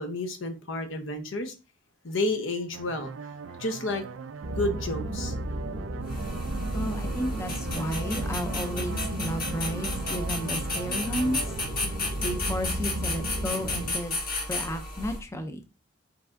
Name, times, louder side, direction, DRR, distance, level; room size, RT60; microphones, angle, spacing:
voice 1, 0.0-1.5 2.0-3.1 3.6-4.0 4.5-5.3, left 2 dB, 80° left, 0.9 m, -30 dB
sound 1, 2.7-11.6, right 6 dB, 90° right, 0.4 m, -41 dB
sound 2, 4.4-13.9, right 1 dB, 60° right, 0.7 m, -34 dB
sound 3, 6.0-15.2, left 2 dB, 45° left, 1.6 m, -33 dB
voice 2, 6.7-11.5 12.2-14.2 14.5-15.6, equal, 15° left, 0.4 m, -33 dB
4.6 x 4.2 x 2.5 m
head